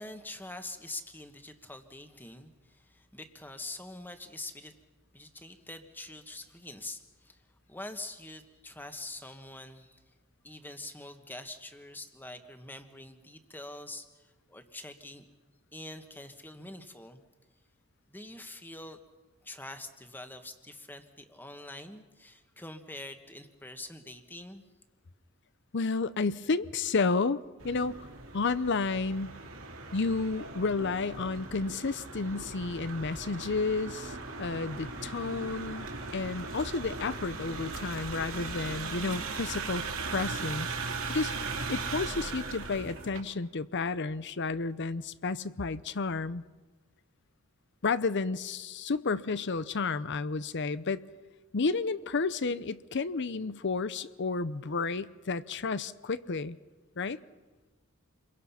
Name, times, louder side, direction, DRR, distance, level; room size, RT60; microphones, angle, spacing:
voice 1, 0.0-4.7 5.1-7.4 7.7-10.0 10.4-15.3 15.7-17.2 18.1-19.0 19.4-24.6, left 2 dB, 10° left, 1.5 m, -45 dB
voice 2, 25.7-27.4 27.6-28.1 28.3-29.3 29.9-39.8 40.1-40.7 41.1-41.3 41.7-46.4 47.8-51.0 51.5-56.6 57.0-57.2, left 4 dB, 55° left, 0.7 m, -31 dB
sound 1, 27.6-43.2, right 4 dB, 65° right, 3.2 m, -38 dB
28.5 x 22.5 x 5.8 m
head